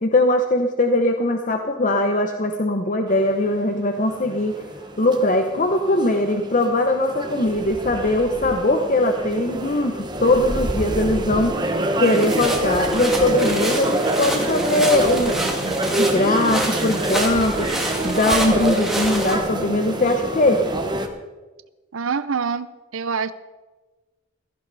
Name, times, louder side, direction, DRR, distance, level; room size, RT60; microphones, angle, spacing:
voice 1, 0.0-4.5 5.0-11.7 12.0-20.6, left 1 dB, 40° left, 5 dB, 0.8 m, -21 dB
sound 1, 3.1-21.1, right 1 dB, 20° right, 1.1 m, -26 dB
sound 2, 12.0-19.4, right 1 dB, ahead, 2.3 m, -29 dB
voice 2, 21.9-22.7 22.9-23.3, right 5 dB, 75° right, 14 dB, 0.6 m, -25 dB
16.0 x 14.5 x 4.1 m, 1.2 s
head